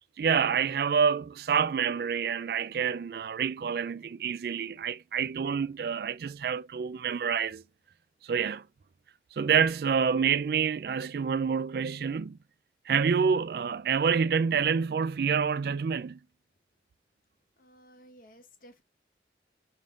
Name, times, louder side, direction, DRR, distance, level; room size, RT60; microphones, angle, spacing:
voice 1, 0.2-7.6 8.2-8.6 9.3-12.4 12.9-16.2, right 6 dB, 60° right, 0.3 m, -27 dB
voice 2, 17.6-18.8, equal, 50° left, 0.9 m, -55 dB
5.2 x 3.5 x 2.4 m
head